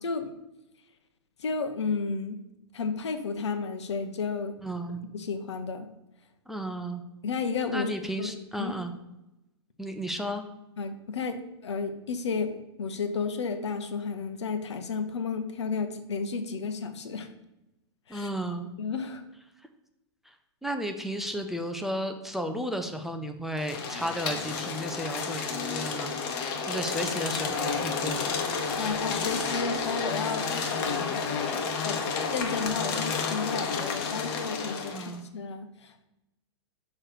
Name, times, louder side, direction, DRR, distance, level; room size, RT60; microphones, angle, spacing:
voice 1, 0.0-0.3 1.4-2.4 2.7-4.6 5.1-5.9 7.2-7.9 8.2-8.7 10.8-17.3 18.1-18.3 18.8-19.2 28.8-31.2 31.8-32.0 32.3-36.1, left 5 dB, 80° left, 8 dB, 0.8 m, -32 dB
voice 2, 4.6-5.0 6.5-7.0 7.7-8.9 9.8-10.4 18.1-18.7 20.6-26.2 26.4-28.4 34.9-35.2, equal, ahead, 5 dB, 0.5 m, -33 dB
sound 1, 23.6-35.1, left 5 dB, 45° left, 1.2 m, -31 dB
6.4 x 3.2 x 5.9 m, 0.92 s
hypercardioid pair, 115°, 14 cm